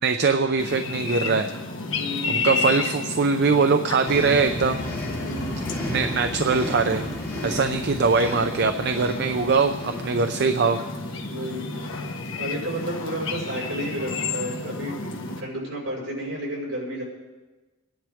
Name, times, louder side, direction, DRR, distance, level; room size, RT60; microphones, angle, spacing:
voice 1, 0.0-1.5 2.3-4.9 5.8-7.1 7.4-10.8, right 4 dB, 55° right, 7 dB, 0.6 m, -22 dB
sound 1, 0.6-15.4, left 3 dB, 70° left, 1.4 m, -32 dB
voice 2, 1.9-2.6 5.2-5.7 7.3-7.8 11.3-11.7 12.4-17.0, equal, 75° right, -3 dB, 5.7 m, -32 dB
sound 2, 4.1-10.5, left 1 dB, 15° left, 2.7 m, -33 dB
24.5 x 10.5 x 3.6 m, 1.2 s
head